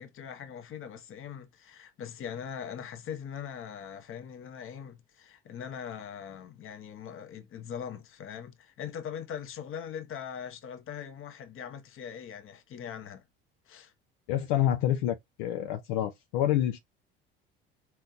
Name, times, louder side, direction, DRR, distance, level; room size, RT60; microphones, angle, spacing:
voice 1, 0.0-13.2 13.7-13.9, left 8 dB, 45° left, 1.2 m, -41 dB
voice 2, 14.3-16.8, left 11 dB, 70° left, 0.7 m, -28 dB
4.4 x 3.5 x 2.5 m
hypercardioid pair, 65°, 29 cm